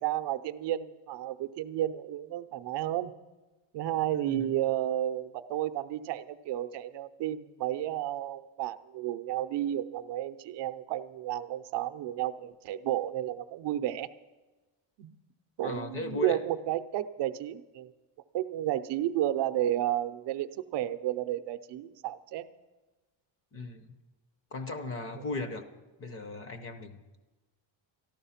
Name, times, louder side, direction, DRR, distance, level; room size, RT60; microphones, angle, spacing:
voice 1, 0.0-3.1 3.7-14.1 15.0-15.1 15.6-17.9 18.3-22.5 25.1-25.3, right 13 dB, 60° right, 9 dB, 0.6 m, -32 dB
voice 2, 4.1-4.5 15.6-16.4 23.5-23.9 24.5-25.6 26.0-27.0, left 2 dB, 30° left, 10 dB, 0.7 m, -37 dB
13.5 x 12.0 x 5.7 m, 1.2 s
cardioid pair, 180°, 47 cm